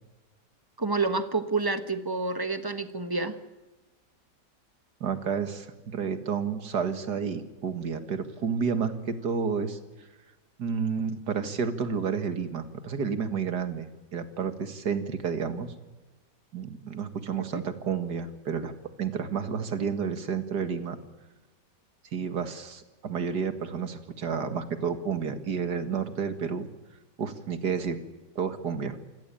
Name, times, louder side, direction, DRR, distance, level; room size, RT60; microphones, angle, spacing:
voice 1, 0.8-3.4 17.5-17.6, right 3 dB, 15° right, 10 dB, 1.2 m, -28 dB
voice 2, 5.0-9.8 10.6-15.7 16.5-18.7 19.0-21.0 22.1-26.7 27.2-28.0 28.4-29.0, right 6 dB, 70° right, 9 dB, 2.3 m, -30 dB
27.0 x 17.0 x 8.7 m, 1.2 s
omnidirectional pair, 1.8 m